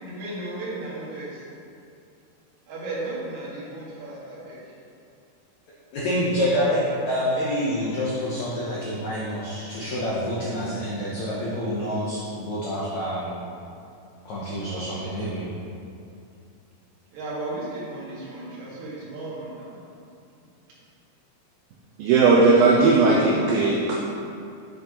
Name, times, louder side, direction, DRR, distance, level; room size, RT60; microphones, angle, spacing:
voice 1, 0.0-1.4 2.7-4.6 14.7-14.8 17.1-19.8, right 2 dB, 55° right, -7 dB, 2.6 m, -35 dB
voice 2, 5.9-13.4 14.2-15.5, equal, 90° left, -7 dB, 1.5 m, -27 dB
voice 3, 22.0-23.9, right 3 dB, 80° right, -3 dB, 2.1 m, -17 dB
8.2 x 7.1 x 3.0 m, 2.5 s
omnidirectional pair, 4.8 m